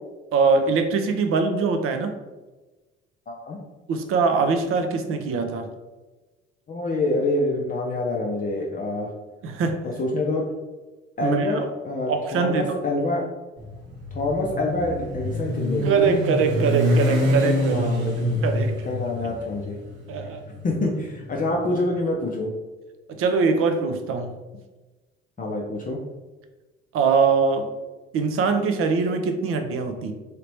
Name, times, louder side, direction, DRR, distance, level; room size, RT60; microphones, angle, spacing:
voice 1, 0.3-2.1 3.9-5.7 9.4-9.8 11.2-11.7 12.1-12.8 15.9-17.9 18.4-18.8 20.1-20.4 23.2-24.3 26.9-27.7 28.1-30.1, right 4 dB, 45° right, 6 dB, 0.6 m, -22 dB
voice 2, 3.3-3.6 6.7-9.1 10.0-10.4 11.2-13.2 14.1-16.0 17.7-19.8 20.6-22.5 25.4-26.0, left 2 dB, 25° left, -2 dB, 0.5 m, -26 dB
Motorcycle, 13.6-21.8, equal, 65° right, 0.9 m, -26 dB
3.3 x 2.8 x 3.0 m, 1.2 s
figure-of-eight pair, 55°, 31 cm